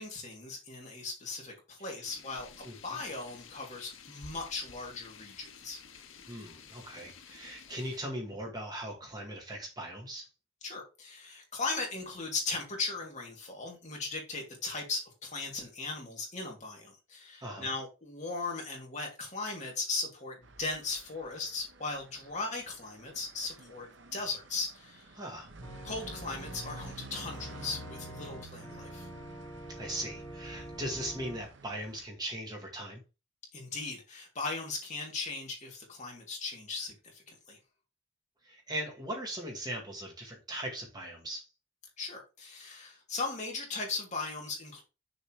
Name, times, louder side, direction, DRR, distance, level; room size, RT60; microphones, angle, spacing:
voice 1, 0.0-5.8 10.6-23.9 24.1-25.2 25.8-29.1 33.5-37.6 42.0-44.8, left 3 dB, 35° left, 2.8 m, -38 dB
sound 1, 2.0-8.0, left 6 dB, 80° left, 1.1 m, -52 dB
voice 2, 6.3-10.3 17.4-17.7 25.1-25.5 29.7-33.0 38.4-41.5, right 1 dB, 20° right, 1.9 m, -39 dB
sound 2, 20.4-32.1, right 2 dB, 65° right, 1.0 m, -50 dB
Organ, 25.6-31.4, equal, 15° left, 1.3 m, -46 dB
6.8 x 4.2 x 4.7 m
head